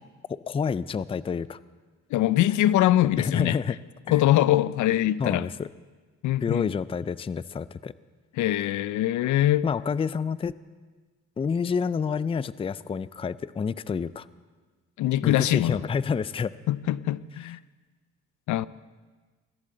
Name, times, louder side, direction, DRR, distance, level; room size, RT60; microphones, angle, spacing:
voice 1, 0.3-1.6 3.2-3.8 4.1-4.2 5.2-5.7 6.4-7.9 9.6-10.6 11.4-14.3 15.2-16.5, left 6 dB, 20° left, 0.4 m, -28 dB
voice 2, 2.1-3.6 4.1-5.5 6.2-6.7 8.4-9.7 15.0-15.8 16.7-17.6 18.5-18.7, left 13 dB, 75° left, 0.5 m, -23 dB
21.0 x 15.5 x 3.9 m
cardioid pair, 90°, 30 cm